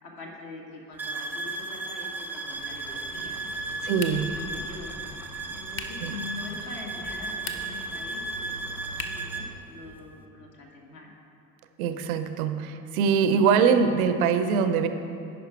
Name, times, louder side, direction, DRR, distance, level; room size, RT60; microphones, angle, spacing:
voice 1, 0.0-3.8 4.1-5.0 5.5-11.1, left 3 dB, 45° left, -1 dB, 1.6 m, -44 dB
sound 1, 1.0-9.5, right 3 dB, 5° right, 0.3 m, -35 dB
sound 2, 2.5-9.5, equal, 75° left, 1.1 m, -46 dB
voice 2, 3.8-4.3 6.0-6.2 11.8-14.9, right 6 dB, 65° right, 9 dB, 0.6 m, -23 dB
sound 3, 4.0-4.5 5.7-6.1 7.3-7.9 8.9-9.3, left 5 dB, 25° left, 0.6 m, -38 dB
10.5 x 4.9 x 4.5 m, 2.7 s
figure-of-eight pair, 55°, 46 cm